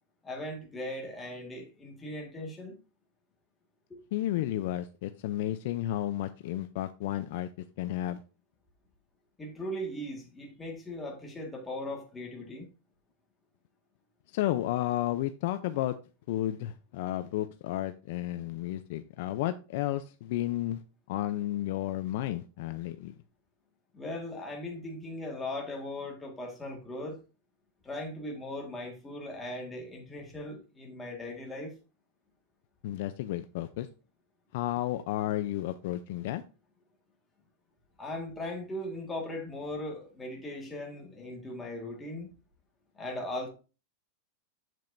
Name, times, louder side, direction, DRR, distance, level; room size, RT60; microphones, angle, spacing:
voice 1, 0.2-2.7 9.4-12.7 23.9-27.2 27.8-31.8 38.0-42.3 42.9-43.5, left 1 dB, 10° left, 1.7 m, -38 dB
voice 2, 4.1-7.5 7.8-8.2 14.3-15.9 16.3-20.8 21.1-23.1 32.8-33.9 34.5-36.4, left 14 dB, 50° left, 0.5 m, -32 dB
7.7 x 7.4 x 2.6 m
supercardioid pair, 170°, 0 cm